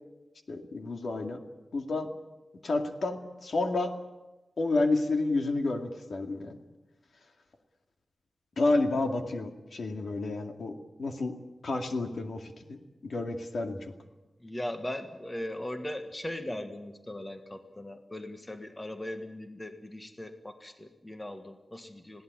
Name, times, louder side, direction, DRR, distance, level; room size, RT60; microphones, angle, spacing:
voice 1, 0.5-1.4 1.7-2.1 2.6-3.9 4.6-6.6 8.6-11.3 11.6-13.8, left 2 dB, 65° left, 4 dB, 2.3 m, -30 dB
voice 2, 14.4-22.2, left 1 dB, 15° left, 7 dB, 1.6 m, -39 dB
20.5 x 17.0 x 9.6 m, 1.1 s
wide cardioid pair, 120°, 0 cm